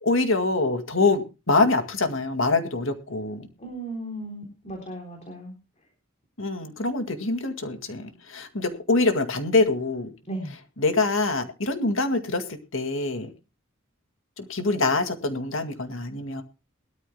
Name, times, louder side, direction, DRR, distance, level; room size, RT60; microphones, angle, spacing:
voice 1, 0.0-3.5 6.4-10.1 10.8-13.3 14.4-16.4, left 3 dB, 70° left, 7 dB, 2.1 m, -25 dB
voice 2, 3.6-5.5 10.3-10.5, right 1 dB, 35° left, 2 dB, 3.6 m, -36 dB
21.5 x 13.5 x 2.2 m, 0.30 s
head